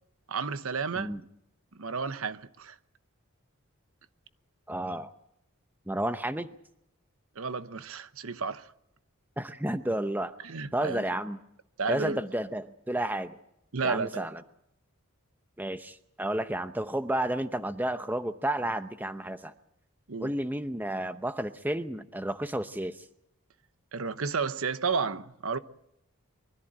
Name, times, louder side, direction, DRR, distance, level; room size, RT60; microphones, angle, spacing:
voice 1, 0.3-1.2 1.8-2.8 7.4-8.7 10.4-11.0 11.8-12.2 13.7-14.3 20.1-20.3 23.9-25.6, right 5 dB, 75° right, 0.9 m, -32 dB
voice 2, 4.7-5.1 5.9-6.5 9.4-10.3 10.7-11.4 11.9-13.4 13.8-14.4 15.6-19.5 20.2-23.0, right 1 dB, 10° right, 0.7 m, -31 dB
24.0 x 14.0 x 8.9 m
head